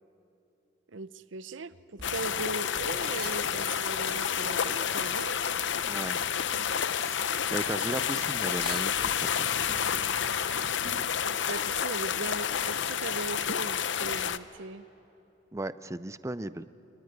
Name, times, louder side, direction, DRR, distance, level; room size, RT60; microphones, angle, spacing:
voice 1, 0.9-5.4 11.2-14.8, right 3 dB, 75° right, 14 dB, 0.8 m, -39 dB
sound 1, 1.7-3.8 4.7-7.2 7.5-9.2 9.7-11.2 11.6-11.7, right 4 dB, 50° right, 1.6 m, -47 dB
sound 2, 2.0-14.4, left 8 dB, 65° left, 0.7 m, -30 dB
voice 2, 5.9-6.2 7.5-9.7 15.5-16.6, right 1 dB, 15° right, 14 dB, 0.5 m, -36 dB
24.5 x 24.0 x 9.6 m, 2.9 s
head